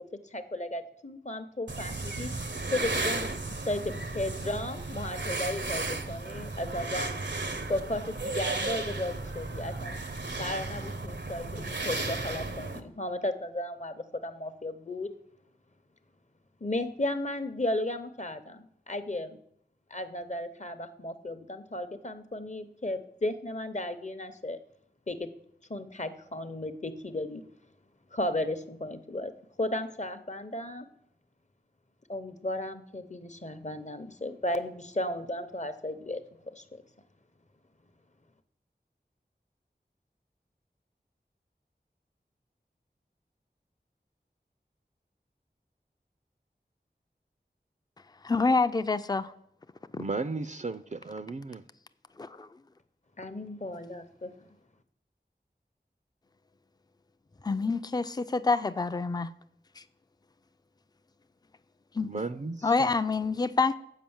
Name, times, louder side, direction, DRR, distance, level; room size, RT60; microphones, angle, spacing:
voice 1, 0.3-2.3 2.7-7.1 7.7-10.0 10.4-15.1 16.6-19.4 19.9-24.6 25.1-25.3 25.7-27.4 28.1-29.3 29.6-30.9 32.1-36.2 36.5-36.8 53.2-54.3, left 1 dB, 40° left, 0.7 m, -34 dB
sound 1, 1.7-12.8, right 3 dB, 85° right, 0.7 m, -34 dB
voice 2, 48.2-49.3 49.9-50.0 52.2-52.5 57.4-59.3 59.8-59.9 61.9-62.1 62.6-63.7, left 4 dB, 20° left, 0.4 m, -27 dB
voice 3, 50.0-51.6 62.0-62.9, right 3 dB, 45° right, 0.4 m, -35 dB
7.5 x 5.1 x 7.1 m
wide cardioid pair, 40°, 18 cm